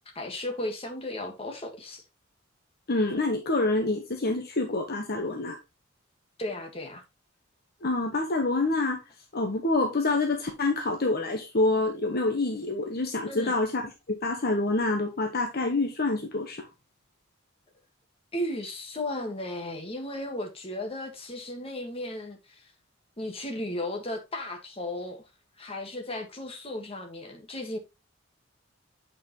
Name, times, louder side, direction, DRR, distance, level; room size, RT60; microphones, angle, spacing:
voice 1, 0.2-2.0 6.4-7.0 13.3-13.6 18.3-22.7 23.2-25.3 25.6-27.8, left 1 dB, 30° left, 1.7 m, -35 dB
voice 2, 2.9-5.6 7.8-9.0 9.3-13.8 14.2-16.6, left 2 dB, 50° left, 1.2 m, -27 dB
8.7 x 5.3 x 3.1 m
head